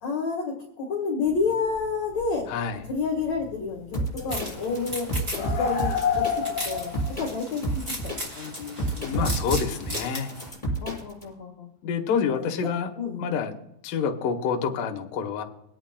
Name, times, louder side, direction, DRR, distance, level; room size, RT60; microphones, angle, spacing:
voice 1, 0.0-2.5 2.8-4.0 4.2-5.1 5.3-6.2 6.6-6.9 7.2-7.8 8.3-9.3 10.8-11.7 12.3-12.4 13.0-13.4, left 4 dB, 65° left, -2 dB, 1.7 m, -29 dB
sound 1, 1.8-1.9 2.2-2.4 3.3-3.5 3.9-7.2, left 7 dB, 45° left, 3.0 m, -29 dB
sound 2, 3.9-11.2, right 2 dB, 10° left, 5.3 m, -30 dB
sound 3, 4.3-10.5, equal, 20° right, 2.5 m, -37 dB
voice 2, 8.9-10.3 11.8-12.9 13.2-13.5 13.8-15.4, left 6 dB, 80° left, 2 dB, 1.9 m, -27 dB
25.0 x 9.0 x 2.2 m, 0.83 s
omnidirectional pair, 5.5 m